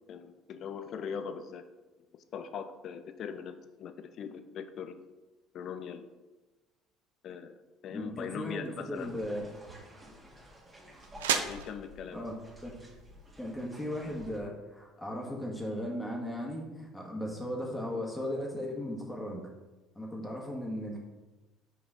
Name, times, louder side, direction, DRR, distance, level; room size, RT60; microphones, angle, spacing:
voice 1, 0.1-1.6 2.3-5.0 5.5-6.0 7.2-7.5 7.8-9.1 11.5-12.2, left 7 dB, 55° left, 10 dB, 0.6 m, -40 dB
voice 2, 7.9-9.5 12.1-12.7 13.4-19.5 19.9-21.0, left 1 dB, 10° left, -2 dB, 1.6 m, -37 dB
sound 1, 8.5-14.5, right 8 dB, 80° right, 0.4 m, -39 dB
sound 2, 8.9-14.4, equal, 20° right, 1.9 m, -52 dB
6.1 x 4.8 x 3.9 m, 1.1 s
hypercardioid pair, 60°, 0 cm